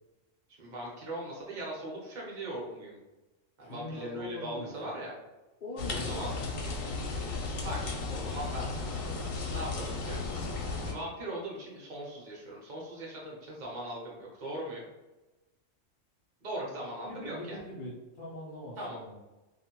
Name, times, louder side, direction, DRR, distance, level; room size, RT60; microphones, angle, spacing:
voice 1, 0.6-3.0 3.6-5.1 5.9-6.3 7.2-9.2 9.5-14.8 16.4-17.6 18.8-19.0, right 1 dB, 45° right, -3 dB, 0.8 m, -40 dB
voice 2, 3.6-4.7 5.6-6.5 17.0-19.2, left 1 dB, 60° left, -6 dB, 0.5 m, -42 dB
sound 1, 5.8-10.9, left 3 dB, 80° left, 1.0 m, -35 dB
2.4 x 2.1 x 2.9 m, 1.1 s
omnidirectional pair, 1.4 m